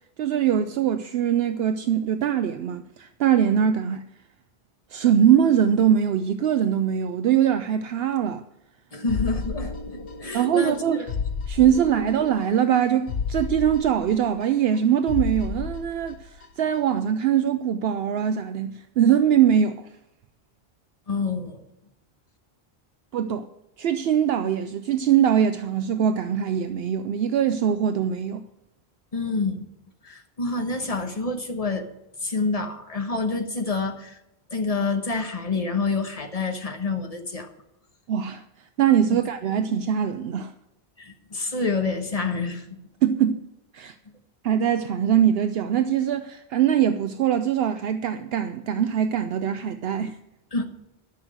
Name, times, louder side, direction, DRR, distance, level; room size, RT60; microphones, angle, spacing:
voice 1, 0.2-4.0 4.9-8.4 10.3-11.1 11.5-19.9 23.1-23.5 23.8-28.4 38.1-38.4 38.8-40.5 43.0-43.4 43.7-44.0 44.4-50.2, right 9 dB, 70° right, 0.8 m, -22 dB
voice 2, 8.9-11.1 11.6-11.7 21.1-21.6 29.1-29.7 30.0-31.8 32.2-34.2 34.5-37.5 39.1-39.2 41.0-42.7 50.5-50.6, left 3 dB, 35° left, 1.4 m, -28 dB
sound 1, 9.1-10.5 10.7-10.8 11.1-12.5 12.7-12.8 13.1-14.8 15.1-16.5 16.7-16.8, left 6 dB, 65° left, 1.1 m, -31 dB
12.5 x 6.3 x 7.8 m
omnidirectional pair, 1.1 m